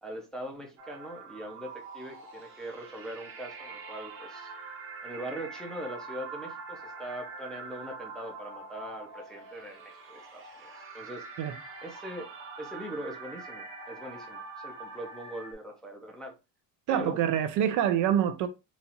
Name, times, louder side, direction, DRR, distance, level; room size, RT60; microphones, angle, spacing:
voice 1, 0.0-4.5 5.0-11.3 11.8-16.3 16.9-17.2, right 1 dB, ahead, 0.5 m, -41 dB
sound 1, 0.8-15.5, right 4 dB, 30° right, 0.9 m, -44 dB
voice 2, 16.9-18.5, right 10 dB, 50° right, 0.4 m, -26 dB
4.0 x 2.4 x 2.8 m
cardioid pair, 160°, 40 cm